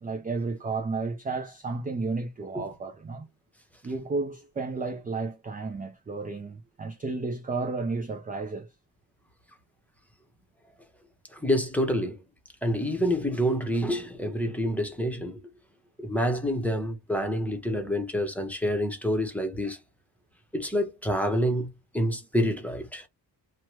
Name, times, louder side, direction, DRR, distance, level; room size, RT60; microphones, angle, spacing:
voice 1, 0.0-3.3 3.8-8.7, right 3 dB, 20° right, 0.4 m, -32 dB
voice 2, 11.3-12.2 12.6-15.4 16.0-19.8 20.5-23.1, equal, 5° left, 0.9 m, -27 dB
3.0 x 2.3 x 3.0 m
cardioid pair, 100°, 41 cm